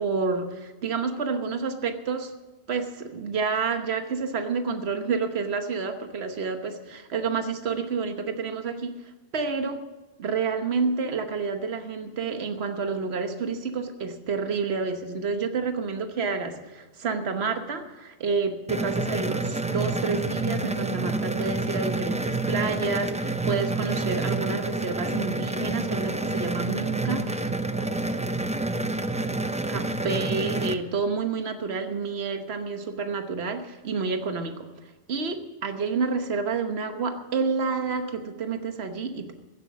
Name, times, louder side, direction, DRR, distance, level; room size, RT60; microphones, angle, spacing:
voice 1, 0.0-2.3 2.7-9.8 10.2-27.5 29.7-39.3, right 4 dB, 80° right, 7 dB, 1.4 m, -29 dB
sound 1, 18.7-30.7, right 2 dB, 10° right, 0.4 m, -28 dB
16.0 x 8.3 x 7.3 m, 1.2 s
omnidirectional pair, 1.1 m